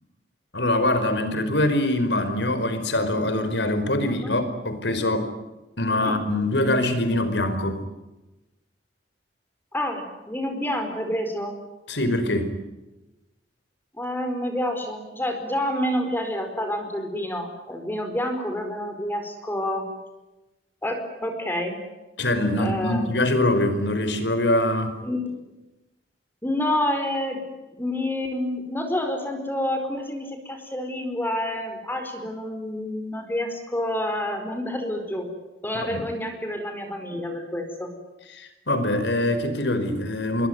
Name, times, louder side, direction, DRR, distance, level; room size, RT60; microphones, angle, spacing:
voice 1, 0.5-5.3 5.8-7.8 11.9-12.5 22.2-25.0 35.7-36.0 38.3-40.5, left 1 dB, 80° left, 10 dB, 4.9 m, -23 dB
voice 2, 4.0-4.3 6.0-6.2 9.7-11.6 14.0-19.9 20.8-21.8 22.6-23.1 25.0-25.2 26.4-27.4 27.8-35.3 35.6-37.9, left 1 dB, 10° left, 5 dB, 4.7 m, -28 dB
28.0 x 22.0 x 9.4 m, 1.0 s
head